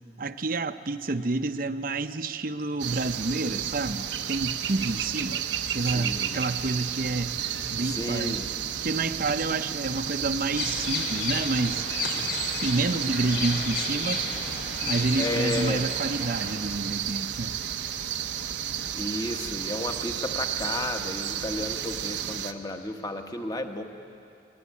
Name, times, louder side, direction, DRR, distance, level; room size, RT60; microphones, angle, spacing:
voice 1, 0.2-5.4 5.7-7.3 7.7-8.4 8.8-11.9 12.6-14.2 14.8-17.5, right 3 dB, 50° right, 10 dB, 0.8 m, -29 dB
sound 1, 2.8-22.5, right 9 dB, 80° right, 0.9 m, -32 dB
voice 2, 5.8-6.4 7.8-8.5 15.2-15.9 18.9-23.8, left 2 dB, 20° left, 5 dB, 1.2 m, -32 dB
sound 2, 10.6-16.5, left 3 dB, 90° left, 3.5 m, -33 dB
24.5 x 19.0 x 8.5 m, 2.6 s
head